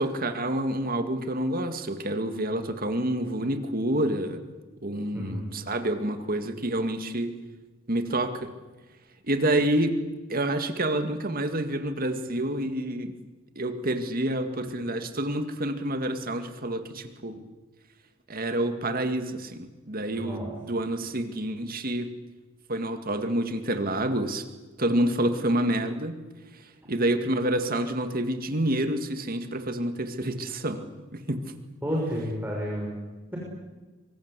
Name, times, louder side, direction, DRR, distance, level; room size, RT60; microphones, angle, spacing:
voice 1, 0.0-4.4 4.8-7.3 7.9-8.5 9.2-9.9 10.3-13.1 13.6-17.4 18.3-22.1 22.7-24.4 24.8-26.2 26.9-30.8 31.1-31.4, right 1 dB, 45° right, 7 dB, 2.1 m, -28 dB
voice 2, 5.1-5.4 20.1-20.5 31.8-33.0, equal, 10° right, -3 dB, 6.1 m, -31 dB
25.0 x 24.5 x 8.3 m, 1.2 s
head